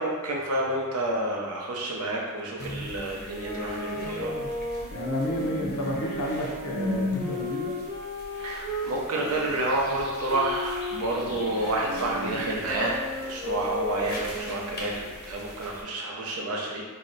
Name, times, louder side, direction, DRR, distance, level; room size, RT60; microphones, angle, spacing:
voice 1, 0.0-4.3 8.4-16.8, right 1 dB, 90° right, -2 dB, 0.6 m, -29 dB
sound 1, 2.6-15.8, left 1 dB, 45° left, 0.6 m, -38 dB
sound 2, 3.4-8.9 9.5-15.1, left 1 dB, 40° right, 0.8 m, -35 dB
voice 2, 4.9-7.8, equal, 90° left, -1 dB, 0.6 m, -31 dB
2.7 x 2.1 x 3.8 m, 1.4 s
head